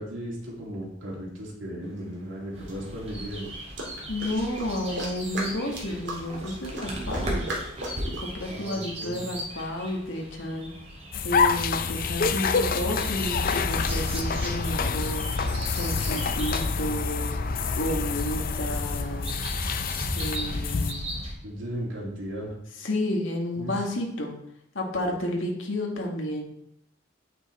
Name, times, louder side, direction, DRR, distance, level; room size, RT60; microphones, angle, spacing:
voice 1, 0.0-3.5 8.5-9.2 21.4-22.6 23.6-23.8, equal, 80° right, -4 dB, 3.0 m, -36 dB
sound 1, 2.0-2.1 2.7-8.2, right 1 dB, 60° right, 2.6 m, -38 dB
sound 2, 2.5-21.3, equal, 35° right, 2.7 m, -37 dB
voice 2, 4.1-7.5 8.2-10.7 11.2-15.4 15.7-17.4 17.7-19.3 20.1-21.1 22.8-24.3 24.7-26.4, left 1 dB, 80° left, 0 dB, 1.8 m, -31 dB
sound 3, 11.1-20.9, left 5 dB, 45° left, 0.5 m, -27 dB
8.6 x 6.5 x 4.3 m, 0.76 s
head